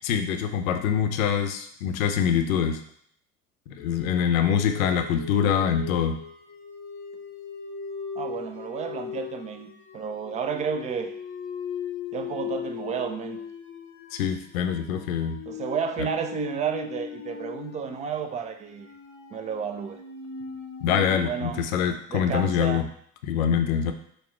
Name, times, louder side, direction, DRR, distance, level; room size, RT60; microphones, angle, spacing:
voice 1, 0.0-2.8 3.7-6.2 14.1-15.4 20.8-22.8 23.2-23.9, left 8 dB, 70° left, 6 dB, 0.6 m, -24 dB
sound 1, 3.8-21.7, left 6 dB, 30° left, 0.7 m, -39 dB
voice 2, 8.2-9.7 9.9-11.1 12.1-13.4 15.5-18.9 19.3-20.0 21.2-21.6 22.1-22.9, right 6 dB, 20° right, 6 dB, 0.3 m, -31 dB
5.3 x 2.2 x 4.3 m, 0.65 s
figure-of-eight pair, 65°, 42 cm